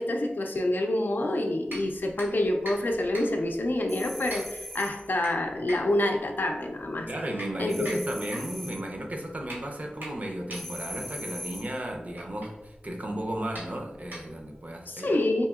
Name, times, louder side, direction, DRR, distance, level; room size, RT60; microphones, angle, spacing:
voice 1, 0.0-7.1 7.6-7.9 14.9-15.5, left 1 dB, 70° left, 4 dB, 0.4 m, -27 dB
sound 1, 1.7-14.7, equal, 80° right, 1.4 m, -44 dB
sound 2, 3.9-5.1 7.7-8.9 10.5-11.8, equal, 5° left, 0.5 m, -40 dB
voice 2, 7.1-15.5, right 1 dB, 45° right, 1 dB, 0.6 m, -34 dB
4.1 x 2.7 x 2.3 m, 1.1 s
wide cardioid pair, 45°, 3 cm